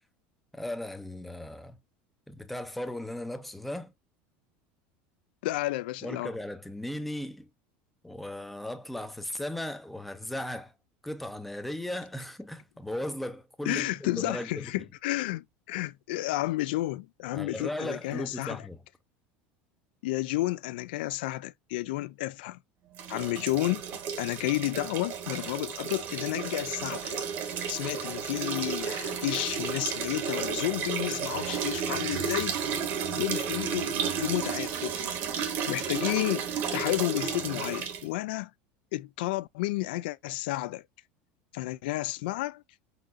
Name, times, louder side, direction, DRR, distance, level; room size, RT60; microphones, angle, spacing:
voice 1, 0.5-1.8 2.3-3.9 6.0-7.5 8.0-10.7 11.0-14.9 17.3-18.8, left 1 dB, ahead, 0.4 m, -37 dB
voice 2, 5.4-6.3 13.7-18.6 20.0-22.6 23.1-23.8 24.2-27.2 27.7-32.6 33.1-35.1 35.7-38.5 38.9-40.8 41.5-42.6, left 18 dB, 85° left, 0.4 m, -31 dB
sound 1, 22.9-38.1, right 7 dB, 40° right, 0.9 m, -33 dB
Speech synthesizer, 31.3-34.6, right 13 dB, 90° right, 0.6 m, -42 dB
4.9 x 4.1 x 2.5 m
cardioid pair, 165°, 5 cm